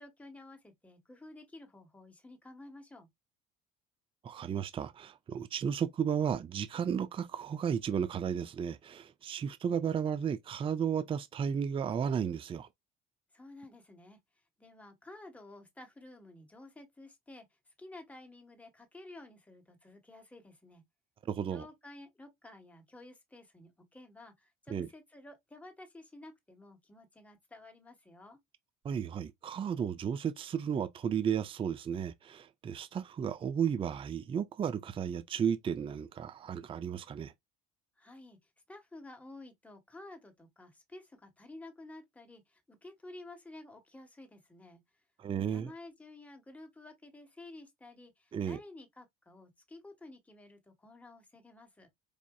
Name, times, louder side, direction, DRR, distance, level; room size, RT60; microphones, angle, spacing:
voice 1, 0.0-3.1 13.3-14.2 14.6-17.5 17.8-20.8 21.5-28.4 38.0-38.4 38.7-44.8 45.5-51.9, left 2 dB, 5° left, 1.3 m, -52 dB
voice 2, 4.2-12.7 21.3-21.7 24.7-24.9 28.8-37.3 45.2-45.7 48.3-48.6, right 8 dB, 25° right, 0.4 m, -33 dB
4.8 x 2.5 x 2.3 m
supercardioid pair, 100°, 20 cm